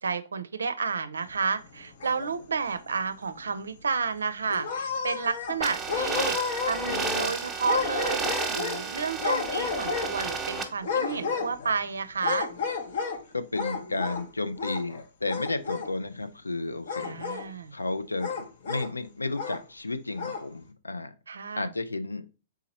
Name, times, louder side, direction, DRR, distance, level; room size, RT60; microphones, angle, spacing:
voice 1, 0.0-6.4 6.7-12.5 17.0-17.8 21.3-21.7, right 5 dB, 80° right, 12 dB, 0.5 m, -31 dB
sound 1, 1.6-2.6 3.0-3.1 3.5-3.6 4.5-5.6 5.9-7.3 7.6-8.8 9.2-10.3 10.8-11.8 12.2-13.2 13.5-14.2 14.5-15.0 15.3-15.9 16.9-17.5 18.2-18.9 19.3-19.6 20.1-20.4, left 6 dB, 60° left, 0.8 m, -32 dB
sound 2, 5.6-10.6, right 5 dB, 15° right, 0.9 m, -32 dB
voice 2, 6.9-7.4 13.3-18.3 18.7-21.1 21.6-22.3, left 2 dB, 90° left, 11 dB, 0.4 m, -33 dB
3.7 x 2.9 x 4.2 m, 0.32 s
figure-of-eight pair, 110°, 0 cm